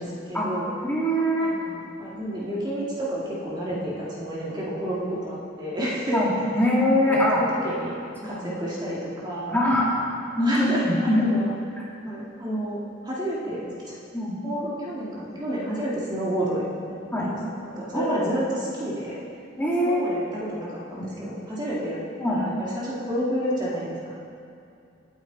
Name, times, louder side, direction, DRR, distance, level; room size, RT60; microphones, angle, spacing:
voice 1, 0.0-0.7 1.4-6.2 7.1-8.0 8.2-9.6 10.4-11.5 12.0-14.0 14.4-16.6 17.2-19.2 19.8-22.0 22.2-24.1, equal, 20° right, -7 dB, 2.6 m, -30 dB
voice 2, 0.8-1.6 3.7-3.8 6.1-7.4 8.2-8.3 9.5-9.9 10.4-11.2 14.1-14.4 17.1-17.3 17.9-18.2 19.6-20.0 22.2-22.4, left 1 dB, 10° left, -6 dB, 3.0 m, -22 dB
27.5 x 9.6 x 4.2 m, 2.5 s
head